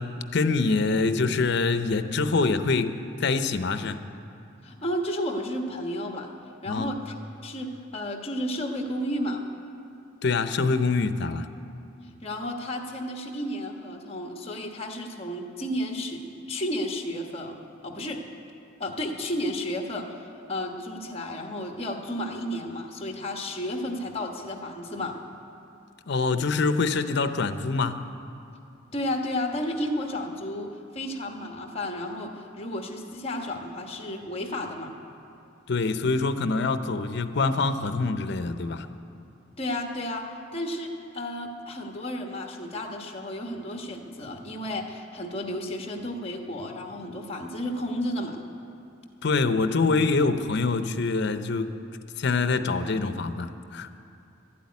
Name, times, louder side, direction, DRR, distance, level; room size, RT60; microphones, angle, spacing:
voice 1, 0.0-4.0 6.7-6.9 10.2-11.5 26.1-28.0 35.7-38.9 49.2-51.7 52.2-53.9, left 3 dB, 60° left, 10 dB, 0.6 m, -25 dB
voice 2, 4.6-6.3 6.6-7.1 7.4-9.4 12.2-16.2 16.5-17.6 17.8-18.2 18.8-20.2 20.5-25.2 28.9-34.9 39.6-48.4, left 1 dB, 30° left, 3 dB, 1.2 m, -32 dB
12.0 x 8.6 x 9.6 m, 2.6 s
head